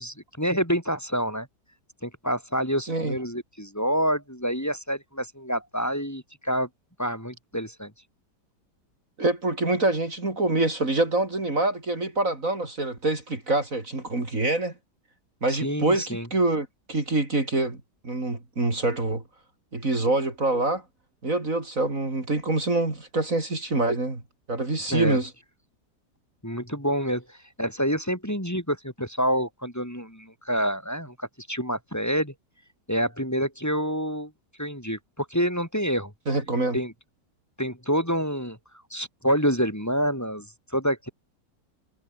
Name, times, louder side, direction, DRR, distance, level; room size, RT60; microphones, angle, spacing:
voice 1, 0.0-1.5 2.0-6.7 7.0-7.9 15.5-16.3 24.9-25.2 26.4-32.3 32.9-34.3 34.6-36.1 36.7-36.9 37.6-38.6 38.9-40.5 40.7-41.1, equal, 10° left, 5.5 m, -27 dB
voice 2, 9.2-14.7 15.4-19.2 19.7-20.8 21.2-24.2 24.5-25.3 36.3-36.8, right 2 dB, 50° right, 4.6 m, -25 dB
omnidirectional pair, 1.9 m